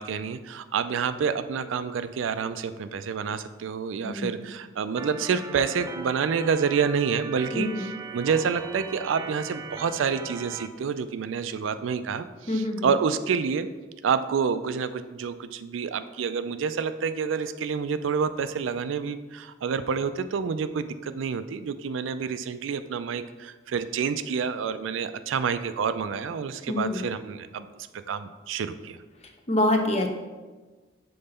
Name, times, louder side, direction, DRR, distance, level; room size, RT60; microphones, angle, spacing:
voice 1, 0.0-13.7 14.0-29.0, right 6 dB, 90° right, 12 dB, 0.4 m, -28 dB
Organ, 5.0-10.7, right 4 dB, 20° right, 0.3 m, -39 dB
voice 2, 7.5-7.9 12.5-12.9 26.7-27.0 29.5-30.1, left 1 dB, 35° left, 4 dB, 0.7 m, -25 dB
5.4 x 3.9 x 5.5 m, 1.3 s
head